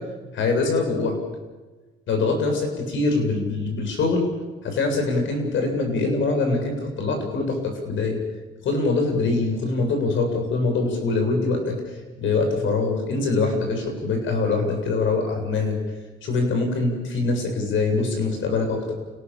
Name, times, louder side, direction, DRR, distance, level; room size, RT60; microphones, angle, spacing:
voice 1, 0.3-1.2 2.1-4.3 4.6-8.2 8.6-11.7 12.2-15.8 16.2-18.9, left 3 dB, 75° left, 4 dB, 7.4 m, -23 dB
29.5 x 18.5 x 7.4 m, 1.2 s
cardioid pair, 90°, 20 cm